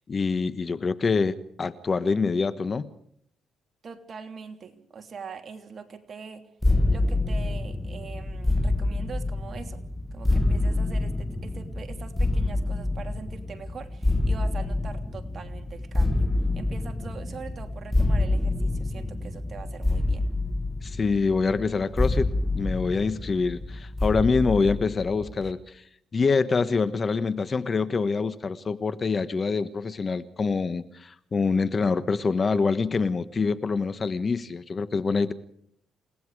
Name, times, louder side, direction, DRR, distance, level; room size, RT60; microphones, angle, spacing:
voice 1, 0.1-2.9 20.8-25.8 26.1-35.3, left 4 dB, 35° left, 13 dB, 1.3 m, -25 dB
voice 2, 3.8-6.5 6.9-9.8 10.1-16.3 16.5-20.3, right 5 dB, 45° right, 5 dB, 3.0 m, -42 dB
sound 1, 6.6-25.5, left 2 dB, 5° left, 1.5 m, -27 dB
29.0 x 18.5 x 4.9 m, 0.66 s
cardioid pair, 90°, 0 cm